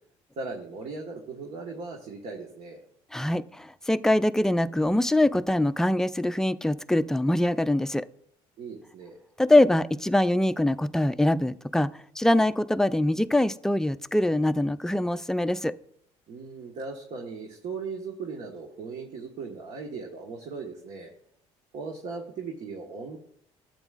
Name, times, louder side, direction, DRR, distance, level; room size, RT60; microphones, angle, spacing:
voice 1, 0.4-2.8 8.6-9.2 16.3-21.1 21.7-23.2, right 4 dB, 65° right, 1 dB, 1.4 m, -38 dB
voice 2, 3.1-8.1 9.4-11.9 12.2-15.7, left 1 dB, 5° left, 12 dB, 0.4 m, -23 dB
12.0 x 8.1 x 2.4 m, 0.66 s
supercardioid pair, 85°, 13 cm